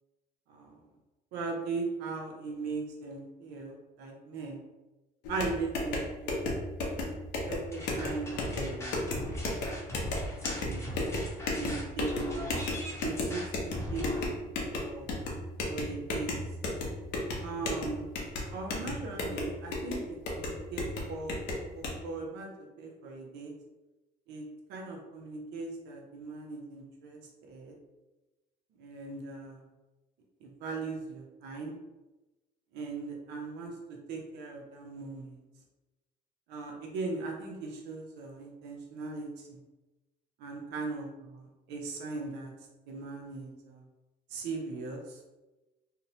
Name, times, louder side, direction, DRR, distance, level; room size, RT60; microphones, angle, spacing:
voice 1, 1.3-4.6 5.3-6.5 7.4-9.0 10.3-10.9 11.6-12.5 13.0-14.2 14.7-15.1 15.7-16.3 17.4-18.1 18.5-20.8 21.1-21.4 21.7-22.5 22.8-23.5 24.3-24.4 24.7-27.7 28.8-29.6 30.4-31.8 32.7-35.4 36.5-39.6 40.4-42.5 42.9-43.8 44.3-45.2, right 3 dB, 90° right, 0 dB, 0.6 m, -39 dB
sound 1, 5.2-21.9, left 2 dB, 90° left, 0.6 m, -35 dB
sound 2, 7.7-14.3, left 1 dB, 15° left, 0.7 m, -39 dB
2.7 x 2.0 x 2.7 m, 1.1 s
cardioid pair, 110°, 17 cm